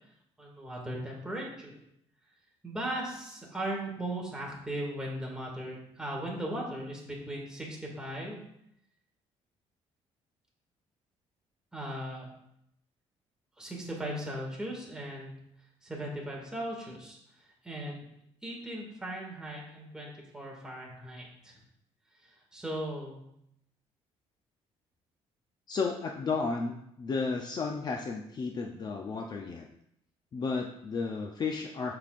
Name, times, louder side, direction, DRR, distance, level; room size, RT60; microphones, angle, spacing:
voice 1, 0.4-1.7 2.6-8.4 11.7-12.3 13.6-15.3 15.8-17.2 17.6-18.1 18.4-21.5 22.5-23.2, right 1 dB, 5° right, -3 dB, 2.1 m, -38 dB
voice 2, 25.7-29.7 30.3-31.9, left 4 dB, 35° left, 2 dB, 0.6 m, -33 dB
6.9 x 6.8 x 2.5 m, 0.76 s
cardioid pair, 120°, 12 cm